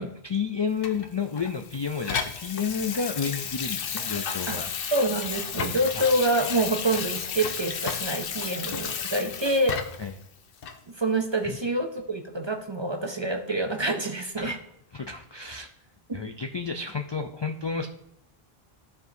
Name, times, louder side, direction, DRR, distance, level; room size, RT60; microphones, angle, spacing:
voice 1, 0.0-4.7 5.9-6.1 10.0-10.1 11.4-11.6 14.4-14.6 14.9-15.7 16.1-17.9, left 5 dB, 45° left, 5 dB, 0.3 m, -31 dB
Water tap faucet / Sink (filling or washing), 0.8-10.1 10.6-10.8, left 7 dB, 65° left, 0.8 m, -33 dB
voice 2, 4.9-9.8 10.9-14.6 16.1-16.2, right 1 dB, 35° right, 5 dB, 0.6 m, -27 dB
13.5 x 4.7 x 2.6 m, 0.78 s
omnidirectional pair, 1.0 m